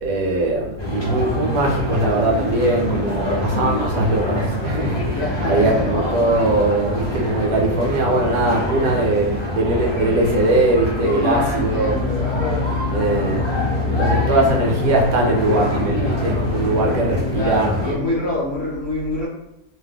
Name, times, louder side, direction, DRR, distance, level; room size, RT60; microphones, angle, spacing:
voice 1, 0.0-12.0 12.9-17.8, right 2 dB, 75° right, 0 dB, 1.0 m, -21 dB
sound 1, 0.8-17.9, left 2 dB, 30° left, 0.5 m, -25 dB
voice 2, 5.1-6.0 8.7-9.0 11.0-12.6 17.3-19.3, left 1 dB, 55° left, -5 dB, 0.8 m, -25 dB
sound 2, 12.0-17.5, left 4 dB, 50° right, 0.5 m, -28 dB
2.8 x 2.0 x 3.4 m, 0.88 s
omnidirectional pair, 1.6 m